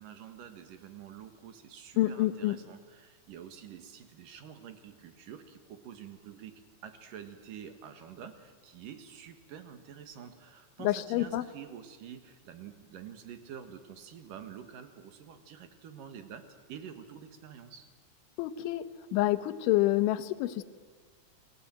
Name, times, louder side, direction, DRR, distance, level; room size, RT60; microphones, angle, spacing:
voice 1, 0.0-17.9, right 8 dB, 60° right, 9 dB, 2.6 m, -48 dB
voice 2, 2.0-2.6 10.8-11.5 18.4-18.8 19.1-20.6, left 15 dB, 85° left, 11 dB, 3.4 m, -27 dB
29.5 x 21.0 x 9.0 m, 1.5 s
omnidirectional pair, 5.3 m